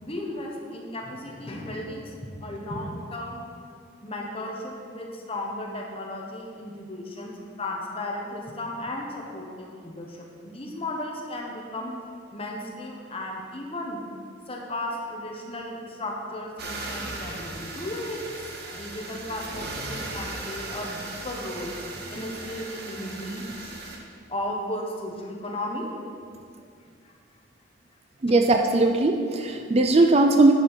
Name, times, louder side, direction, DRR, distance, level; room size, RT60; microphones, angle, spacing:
voice 1, 0.0-3.4 4.0-11.9 12.3-14.0 14.5-18.3 18.7-23.7 24.3-25.9 27.0-27.1, left 1 dB, 30° left, -1 dB, 1.2 m, -35 dB
sound 1, 16.6-24.0, right 2 dB, 50° right, 1.1 m, -37 dB
voice 2, 28.2-30.5, right 2 dB, 30° right, 5 dB, 0.4 m, -19 dB
10.0 x 5.1 x 5.8 m, 2.3 s
head